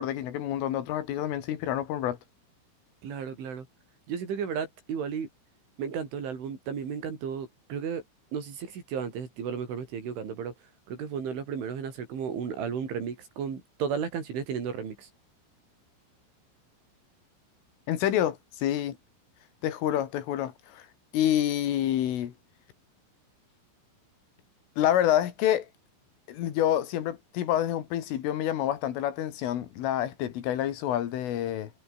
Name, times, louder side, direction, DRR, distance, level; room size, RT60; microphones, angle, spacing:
voice 1, 0.0-2.2 17.9-19.0 19.6-20.8 21.1-22.3 24.8-25.7 26.3-31.7, left 11 dB, 80° left, 4.9 m, -28 dB
voice 2, 3.0-3.7 4.1-5.3 5.8-8.0 8.3-10.5 10.9-15.1, right 7 dB, 70° right, 7.4 m, -34 dB
omnidirectional pair, 5.7 m